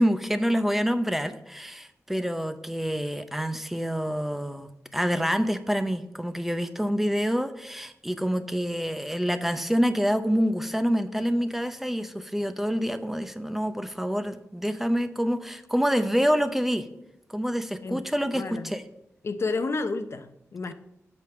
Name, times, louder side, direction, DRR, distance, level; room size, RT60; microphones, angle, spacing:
voice 1, 0.0-16.9 17.3-18.8, equal, 5° right, 10 dB, 0.6 m, -27 dB
voice 2, 18.3-18.7 19.2-20.7, left 3 dB, 55° left, 10 dB, 0.7 m, -30 dB
8.0 x 5.1 x 6.9 m, 0.81 s
wide cardioid pair, 90°, 5 cm